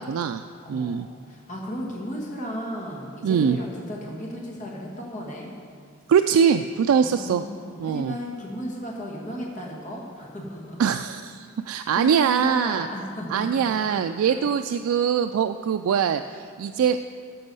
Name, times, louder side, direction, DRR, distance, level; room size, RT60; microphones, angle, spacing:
voice 1, 0.0-0.4 0.7-1.1 3.2-3.6 6.1-7.4 7.8-8.1 10.8-12.9 13.3-17.1, right 7 dB, 80° right, 8 dB, 0.3 m, -22 dB
voice 2, 0.6-5.5 6.9-10.8 11.9-14.0 14.3-14.4, equal, 35° left, -2 dB, 1.5 m, -35 dB
13.0 x 6.2 x 5.4 m, 2.2 s
head